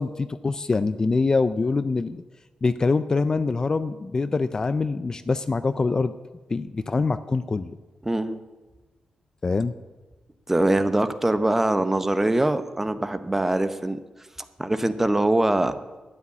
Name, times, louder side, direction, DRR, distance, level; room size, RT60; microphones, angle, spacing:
voice 1, 0.0-2.2 2.6-6.1 6.5-7.8 9.4-9.7, left 3 dB, 25° left, 12 dB, 0.4 m, -24 dB
voice 2, 8.0-8.4 10.5-14.0 14.6-15.8, right 1 dB, 10° right, 11 dB, 0.7 m, -23 dB
12.5 x 9.9 x 9.5 m, 1.2 s
wide cardioid pair, 170°, 2 cm